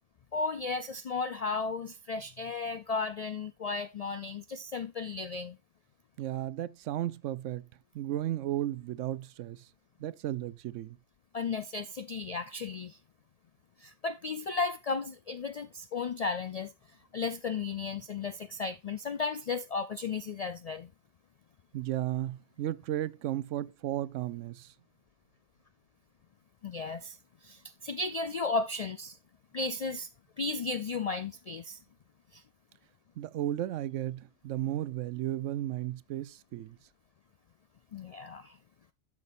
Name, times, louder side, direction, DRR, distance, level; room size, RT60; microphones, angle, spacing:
voice 1, 0.3-5.6 11.3-13.0 13.8-16.7 17.1-20.9 26.6-29.2 29.5-30.1 30.4-31.8 32.3-32.4 37.9-38.6, left 4 dB, 70° left, 0.3 m, -34 dB
voice 2, 6.2-7.7 7.9-9.7 10.0-11.0 21.7-24.7 33.2-36.8, right 13 dB, 90° right, 0.9 m, -34 dB
12.0 x 6.0 x 2.5 m
omnidirectional pair, 1.2 m